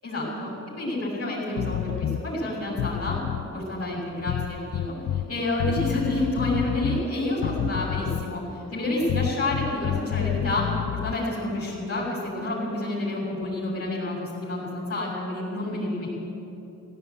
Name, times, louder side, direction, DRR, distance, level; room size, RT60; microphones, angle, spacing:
voice 1, 0.0-3.2 3.5-4.9 5.3-10.6 11.0-16.1, left 1 dB, 50° left, -6 dB, 6.7 m, -29 dB
sound 1, 1.6-2.2 2.7-3.5 4.3-5.3 5.6-7.1 7.4-8.4 9.1-11.2, left 11 dB, 75° left, 0.6 m, -29 dB
17.0 x 16.5 x 9.3 m, 3.0 s
cardioid pair, 95°, 31 cm